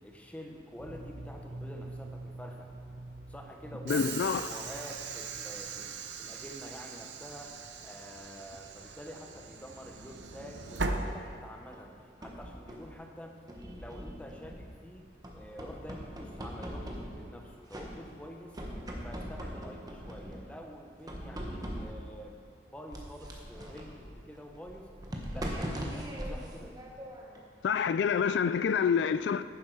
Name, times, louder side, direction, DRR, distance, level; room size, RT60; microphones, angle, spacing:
voice 1, 0.0-2.7 3.3-7.5 7.8-13.4 13.7-15.1 15.3-18.6 19.0-22.4 22.7-24.9 25.3-26.7, equal, 10° left, 1.0 m, -47 dB
sound 1, 0.8-6.2 6.5-6.6, right 2 dB, 65° right, 1.1 m, -46 dB
voice 2, 3.9-4.4 27.6-29.4, left 7 dB, 80° left, 0.3 m, -27 dB
Train / Sliding door, 3.9-11.8, right 4 dB, 85° right, 0.8 m, -39 dB
sound 2, 11.7-13.0 13.5-14.8 15.2-17.4 17.7-18.3 18.5-20.5 21.1-22.2 22.9-27.4, equal, 20° right, 1.2 m, -41 dB
11.0 x 10.5 x 4.8 m
head